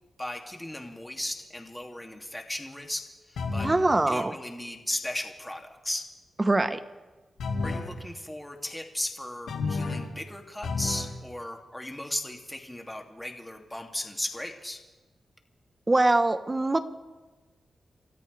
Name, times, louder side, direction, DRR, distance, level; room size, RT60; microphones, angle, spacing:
voice 1, 0.2-3.7 4.0-6.1 7.6-14.8, left 1 dB, 10° left, 2 dB, 2.7 m, -36 dB
sound 1, 3.4-3.9 7.4-7.9 9.5-10.1 10.6-11.1, left 4 dB, 85° left, 2.0 m, -31 dB
voice 2, 3.6-4.3 6.4-6.8 15.9-16.8, right 2 dB, 30° right, 10 dB, 1.3 m, -23 dB
29.5 x 13.5 x 3.5 m, 1.2 s
supercardioid pair, 45°, 0 cm